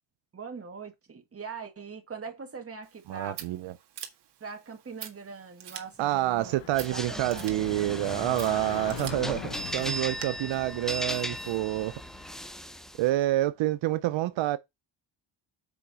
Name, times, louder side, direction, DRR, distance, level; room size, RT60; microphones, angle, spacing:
voice 1, 0.3-3.4 4.4-7.5, right 5 dB, 30° right, 2.3 m, -42 dB
Scissors, 2.8-10.2, right 9 dB, 65° right, 1.9 m, -46 dB
voice 2, 3.1-3.7 6.0-11.9 13.0-14.6, right 15 dB, 90° right, 0.7 m, -28 dB
sound 1, 6.1-12.7, left 16 dB, 75° left, 0.6 m, -43 dB
sound 2, 6.7-13.1, equal, ahead, 0.7 m, -37 dB
7.1 x 5.0 x 5.5 m
cardioid pair, 120°, 44 cm